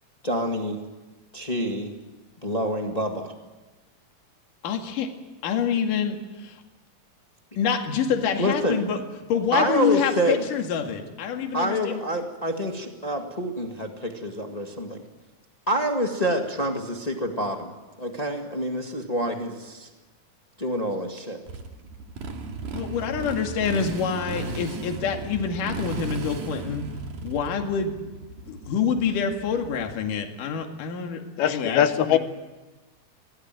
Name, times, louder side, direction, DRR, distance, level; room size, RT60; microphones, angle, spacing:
voice 1, 0.2-0.8 1.3-1.9 2.4-3.3 8.4-8.8 9.5-10.4 11.5-15.0 15.7-17.7 18.0-19.9 20.6-21.4, equal, 35° left, 3 dB, 0.6 m, -27 dB
voice 2, 4.6-5.1 5.4-6.6 7.6-9.0 9.3-12.0 22.6-26.9 27.2-28.0 28.5-32.2, left 6 dB, 60° left, 3 dB, 3.5 m, -27 dB
Motorcycle, 21.5-30.1, right 3 dB, 55° right, 3.4 m, -35 dB
voice 3, 31.4-32.2, left 10 dB, 80° left, 10 dB, 2.8 m, -21 dB
25.0 x 18.5 x 9.2 m, 1.2 s
omnidirectional pair, 4.5 m